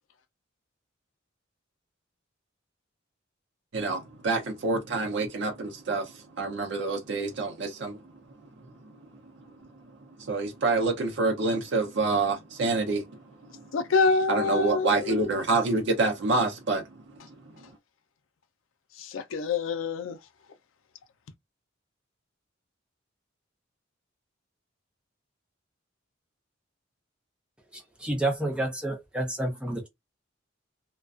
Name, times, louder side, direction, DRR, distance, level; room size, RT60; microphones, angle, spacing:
voice 1, 3.7-8.0 10.2-13.0 13.5-13.6 14.3-16.8, right 3 dB, 60° right, 0.6 m, -27 dB
voice 2, 13.7-15.1 19.0-20.2, left 4 dB, 90° left, 0.4 m, -26 dB
voice 3, 27.7-29.9, right 1 dB, 5° right, 0.5 m, -30 dB
2.4 x 2.2 x 2.4 m
head